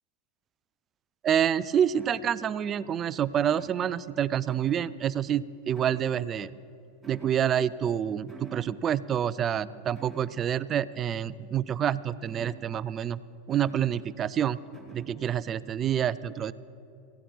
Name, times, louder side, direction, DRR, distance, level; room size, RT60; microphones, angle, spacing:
voice 1, 1.2-6.6 7.1-13.2 13.5-14.6 14.9-16.5, right 9 dB, 35° right, 16 dB, 0.4 m, -27 dB
sound 1, 2.0-2.6 3.4-4.2 4.5-5.2 5.7-6.5 7.0-7.9 8.3-8.8 9.9-10.5 12.2-13.0 13.5-14.0 14.7-15.3, right 3 dB, ahead, 3.1 m, -49 dB
28.5 x 15.5 x 2.4 m, 2.8 s
hypercardioid pair, 95°, 0 cm